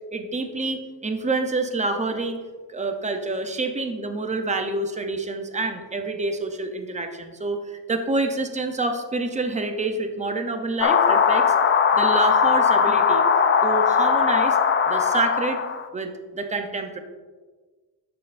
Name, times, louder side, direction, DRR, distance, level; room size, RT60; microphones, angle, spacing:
voice 1, 0.1-2.4 2.7-11.5 11.9-13.3 13.6-14.6 14.9-15.6 15.9-17.0, right 3 dB, 15° right, 5 dB, 0.7 m, -27 dB
sound 1, 10.8-15.9, left 6 dB, 30° left, 0.4 m, -19 dB
11.0 x 7.7 x 2.6 m, 1.4 s
cardioid pair, 155°, 42 cm